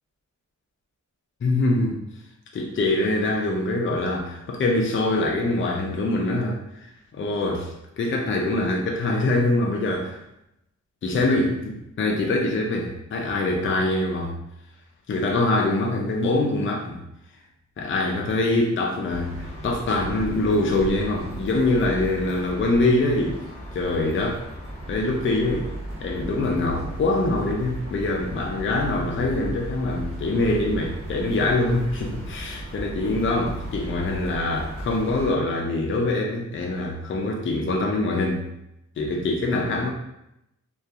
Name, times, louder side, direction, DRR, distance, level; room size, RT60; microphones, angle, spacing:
voice 1, 1.4-2.0 2.5-10.2 11.0-14.4 15.1-17.0 17.8-23.4 23.7-24.4 24.9-25.7 26.0-38.5 39.0-39.9, left 2 dB, 40° left, 0 dB, 0.4 m, -24 dB
sound 1, 19.1-35.3, right 1 dB, 50° right, 0.8 m, -36 dB
2.7 x 2.3 x 2.3 m, 0.84 s
wide cardioid pair, 165°, 30 cm